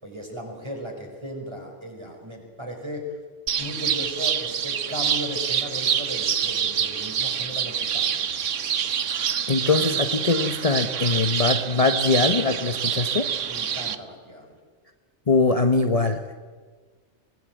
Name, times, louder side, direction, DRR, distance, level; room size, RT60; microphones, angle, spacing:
voice 1, 0.0-3.1 3.6-8.2 13.5-14.6, equal, 20° right, 2 dB, 5.2 m, -36 dB
sound 1, 3.5-14.0, right 8 dB, 90° right, 1.3 m, -26 dB
voice 2, 9.5-13.3 15.3-16.3, left 3 dB, 30° left, 6 dB, 1.1 m, -22 dB
23.5 x 18.5 x 9.2 m, 1.5 s
omnidirectional pair, 1.2 m